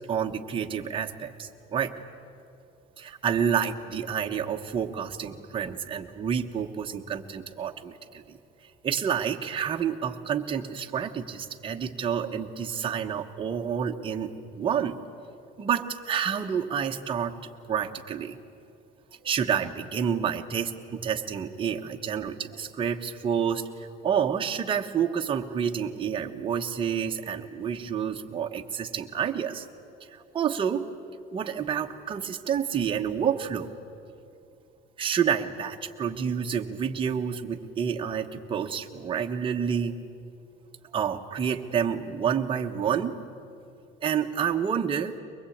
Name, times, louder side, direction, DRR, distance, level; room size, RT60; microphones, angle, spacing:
voice 1, 0.1-1.9 3.0-8.4 8.8-14.9 15.6-17.3 17.7-18.4 19.2-29.6 30.1-30.8 31.3-33.7 35.0-39.9 40.9-43.1 44.0-45.1, right 7 dB, 25° right, 3 dB, 1.1 m, -29 dB
23.0 x 20.5 x 8.6 m, 2.6 s
cardioid pair, 140°, 20 cm